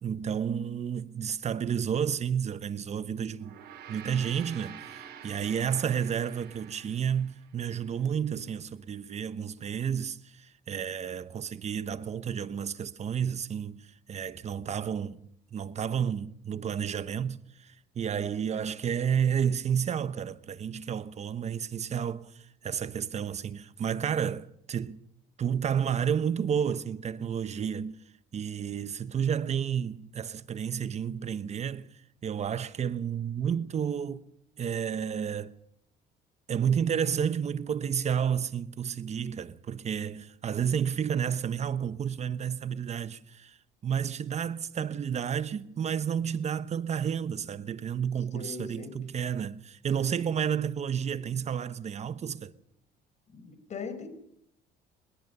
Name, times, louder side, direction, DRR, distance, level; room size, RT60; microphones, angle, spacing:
voice 1, 0.0-3.6 3.9-13.8 14.1-15.2 15.5-25.0 25.4-28.0 28.3-34.2 34.6-35.5 36.5-43.6 43.8-52.5, right 8 dB, 40° right, 1.1 m, -31 dB
Gong, 3.3-8.0, right 9 dB, 75° right, 5.5 m, -47 dB
voice 2, 48.3-48.9 53.3-54.1, left 5 dB, 45° left, 5.1 m, -40 dB
23.0 x 20.5 x 7.0 m
cardioid pair, 110°, 17 cm